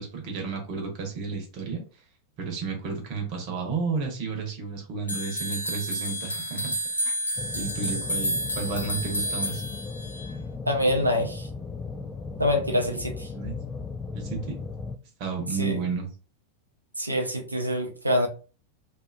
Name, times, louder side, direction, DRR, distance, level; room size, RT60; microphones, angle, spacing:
voice 1, 0.0-1.8 2.4-6.7 7.0-7.1 7.5-9.6 13.3-13.6 14.1-14.6 15.2-16.1, right 4 dB, 45° right, 2 dB, 1.0 m, -32 dB
sound 1, 5.1-10.3, equal, 80° left, 0.5 m, -30 dB
sound 2, 7.4-15.0, left 4 dB, 15° left, 0.3 m, -36 dB
voice 2, 10.6-11.5 12.4-13.3 15.6-15.8 17.0-18.3, left 1 dB, 85° right, 3 dB, 0.6 m, -25 dB
2.6 x 2.5 x 2.3 m, 0.36 s
figure-of-eight pair, 90°, 0 cm